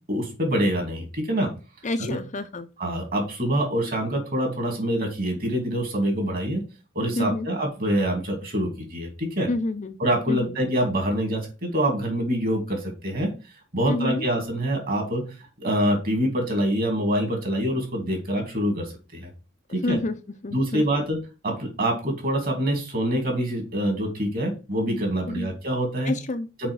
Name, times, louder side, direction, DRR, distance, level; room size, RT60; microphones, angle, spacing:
voice 1, 0.1-1.5 2.0-2.2 2.8-6.6 6.9-9.5 10.0-13.3 13.7-15.2 15.6-19.3 19.7-20.0 20.5-21.2 21.4-26.1 26.6-26.7, right 1 dB, 45° right, 3 dB, 2.8 m, -25 dB
voice 2, 1.8-2.7 7.2-7.5 9.5-10.0 10.3-10.6 13.9-14.3 19.8-20.2 20.4-21.0 25.3-25.5 26.1-26.5, left 2 dB, 35° left, 9 dB, 0.6 m, -28 dB
6.1 x 5.0 x 4.9 m, 0.31 s
head